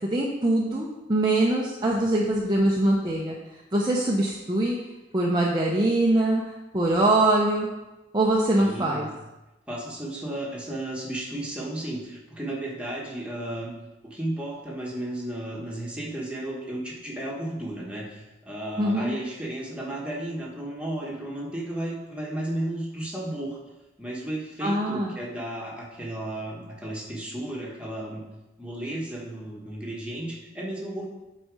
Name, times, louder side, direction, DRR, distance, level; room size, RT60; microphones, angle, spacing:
voice 1, 0.1-3.3 3.7-4.8 5.1-6.4 6.7-7.7 8.1-9.1 18.8-19.1 24.6-25.1, right 1 dB, 20° right, -3 dB, 0.7 m, -23 dB
voice 2, 8.6-9.1 9.7-13.7 14.0-23.6 24.0-28.2 28.6-31.1, right 1 dB, 5° right, -3 dB, 1.4 m, -34 dB
8.9 x 4.2 x 4.8 m, 1.0 s
head